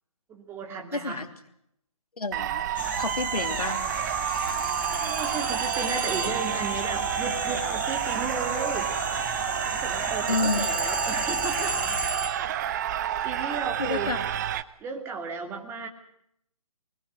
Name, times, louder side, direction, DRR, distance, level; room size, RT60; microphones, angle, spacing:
voice 1, 0.3-1.2 5.0-8.9 9.6-12.0 12.7-12.8 13.2-14.1 14.8-15.9, right 5 dB, 10° right, 2 dB, 2.7 m, -34 dB
voice 2, 0.9-1.3 2.2-2.7 2.9-3.8 4.3-4.9 10.3-10.7 13.4-14.2, left 3 dB, 85° left, 7 dB, 3.2 m, -31 dB
sound 1, 2.3-14.6, right 10 dB, 30° right, 0.9 m, -29 dB
sound 2, 2.8-12.1, left 5 dB, 10° left, 1.7 m, -37 dB
Telephone, 4.3-6.6 10.3-12.5, right 2 dB, 80° right, 1.4 m, -33 dB
25.0 x 21.0 x 6.5 m, 0.75 s
figure-of-eight pair, 150°, 19 cm